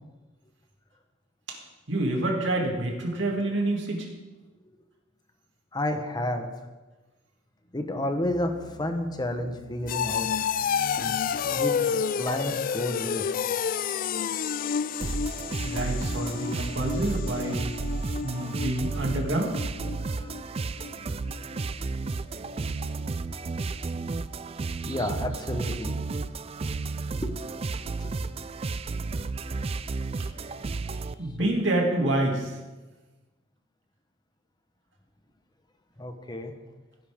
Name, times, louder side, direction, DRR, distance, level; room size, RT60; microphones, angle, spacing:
voice 1, 1.9-4.1 15.6-17.8 18.2-19.6 31.2-32.6, right 1 dB, 65° right, 0 dB, 2.5 m, -27 dB
voice 2, 5.7-6.5 7.7-8.5 8.8-10.3 11.0-13.3 20.0-20.3 24.9-26.0 27.2-27.4 28.0-28.3 31.4-31.5 36.0-36.5, left 1 dB, 20° left, 6 dB, 1.1 m, -31 dB
sound 1, 8.2-20.9 21.3-21.7 22.1-22.2, left 7 dB, 45° left, 0.3 m, -31 dB
sound 2, 15.0-31.1, right 3 dB, 30° right, 0.4 m, -32 dB
16.5 x 11.0 x 3.7 m, 1.2 s
head